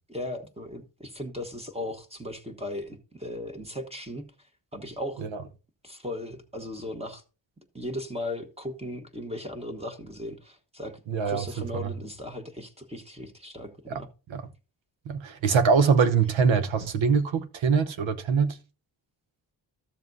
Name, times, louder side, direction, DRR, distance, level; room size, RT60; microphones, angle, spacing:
voice 1, 0.1-4.3 4.7-5.2 5.8-7.2 7.7-11.0 11.2-14.1, left 1 dB, 15° right, 1.2 m, -37 dB
voice 2, 11.1-11.5 11.7-11.9 13.9-14.0 14.3-14.4 15.1-18.6, right 5 dB, 80° right, 1.0 m, -23 dB
13.0 x 7.2 x 2.7 m
cardioid pair, 80°, 46 cm